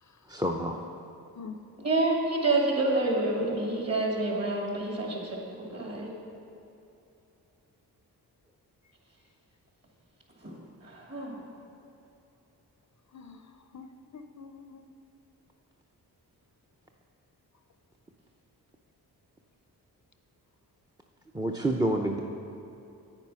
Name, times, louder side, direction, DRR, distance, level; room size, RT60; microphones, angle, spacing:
voice 1, 0.3-0.8 21.3-22.2, right 1 dB, 10° right, 2 dB, 0.7 m, -28 dB
voice 2, 1.8-6.1 10.4-10.6 10.8-11.4, right 2 dB, 40° right, -1 dB, 2.7 m, -28 dB
voice 3, 13.1-14.9, left 5 dB, 45° left, 8 dB, 0.6 m, -46 dB
9.0 x 8.7 x 5.6 m, 2.7 s
cardioid pair, 55°, 40 cm